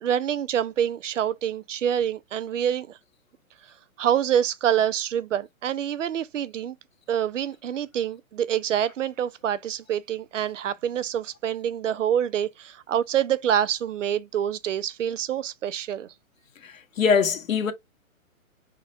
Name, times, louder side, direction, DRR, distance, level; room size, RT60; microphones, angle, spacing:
voice 1, 0.0-3.0 4.0-6.8 7.1-16.1, right 9 dB, 60° right, 0.7 m, -26 dB
voice 2, 16.6-17.7, left 6 dB, 70° left, 1.2 m, -23 dB
5.1 x 4.0 x 2.6 m
hypercardioid pair, 140°, 42 cm